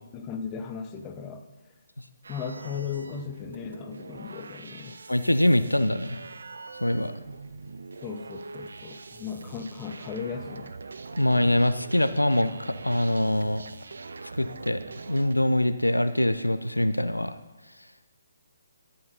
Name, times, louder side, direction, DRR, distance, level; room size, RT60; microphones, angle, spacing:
voice 1, 0.1-1.4 2.3-5.0 8.0-10.7, left 6 dB, 20° left, 6 dB, 0.8 m, -36 dB
sound 1, 2.2-15.6, right 4 dB, 60° right, 0.5 m, -43 dB
voice 2, 5.1-6.3 6.8-7.1 11.2-13.6 14.4-17.4, left 1 dB, 85° left, 11 dB, 0.6 m, -24 dB
12.5 x 8.7 x 4.1 m, 1.2 s
figure-of-eight pair, 140°, 0 cm